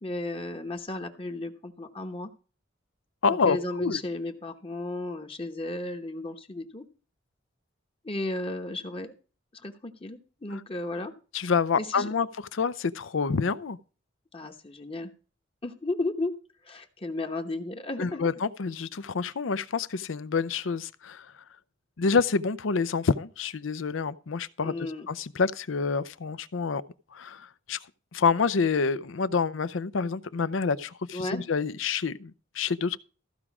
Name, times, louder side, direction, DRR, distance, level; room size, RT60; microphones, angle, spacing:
voice 1, 0.0-2.3 3.4-6.8 8.0-9.1 9.5-11.1 11.8-12.1 14.3-15.1 15.6-16.3 16.6-18.3 24.6-25.1 31.1-31.4, left 2 dB, 30° left, 1.0 m, -34 dB
voice 2, 3.2-4.0 11.3-13.8 18.0-21.3 22.0-24.8 25.1-26.8 27.1-27.8 28.1-33.0, left 5 dB, 85° left, 0.6 m, -27 dB
14.5 x 4.9 x 6.0 m
head